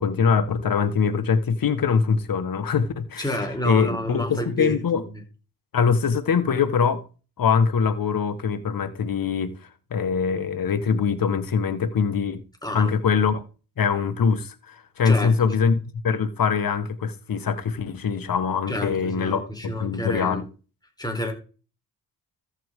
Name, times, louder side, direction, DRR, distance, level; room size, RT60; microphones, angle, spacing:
voice 1, 0.0-3.3 3.6-5.0 5.7-7.0 7.4-9.6 9.9-12.4 12.7-13.4 13.8-20.5, left 6 dB, 50° left, 1.5 m, -23 dB
voice 2, 3.2-4.8 12.6-12.9 15.1-15.5 18.7-20.5 21.0-21.3, equal, 10° left, 3.8 m, -29 dB
14.0 x 6.6 x 3.7 m
supercardioid pair, 55°, 45 cm